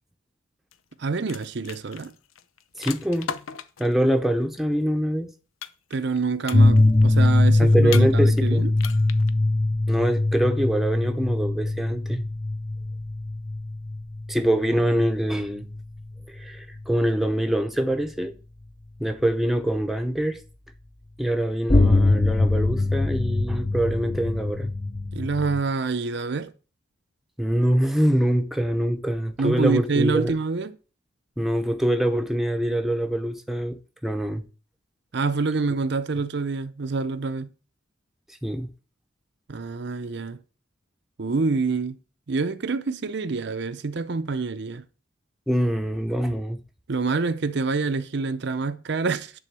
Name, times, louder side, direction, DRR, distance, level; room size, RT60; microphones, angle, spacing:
sound 1, 0.7-0.9 1.2-3.9 5.6-6.2 6.4-7.0 7.9-8.5 8.8-9.3, left 8 dB, 90° left, 0.7 m, -36 dB
voice 1, 1.0-2.1 5.9-8.7 25.1-26.5 29.4-30.8 35.1-37.5 39.5-40.4 41.2-42.0 42.3-44.8 46.9-49.3, right 4 dB, 55° right, 0.6 m, -26 dB
voice 2, 2.8-3.3 3.8-5.3 7.6-8.7 9.9-12.2 14.3-15.7 16.3-18.3 19.0-20.4 21.2-24.7 27.4-30.4 31.4-33.8 34.0-34.4 38.4-38.7 45.5-46.6, right 1 dB, ahead, 0.8 m, -24 dB
sound 2, 6.5-15.8 16.8-16.9 21.7-25.6, left 2 dB, 25° left, 0.5 m, -22 dB
10.5 x 3.8 x 7.4 m
head